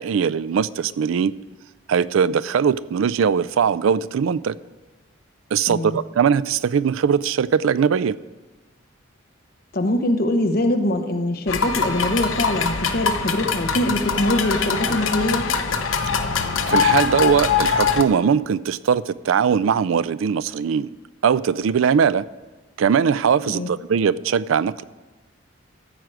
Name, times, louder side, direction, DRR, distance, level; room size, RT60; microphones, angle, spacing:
voice 1, 0.0-1.3 1.9-4.6 5.5-8.2 16.0-16.1 16.7-20.9 21.2-22.3 22.8-24.8, right 7 dB, 80° right, 18 dB, 0.4 m, -20 dB
voice 2, 5.7-6.0 9.7-15.5 23.5-23.7, left 1 dB, 50° left, 6 dB, 1.0 m, -23 dB
sound 1, 11.5-18.0, left 6 dB, 80° left, 0.8 m, -22 dB
14.0 x 4.8 x 7.7 m, 1.2 s
head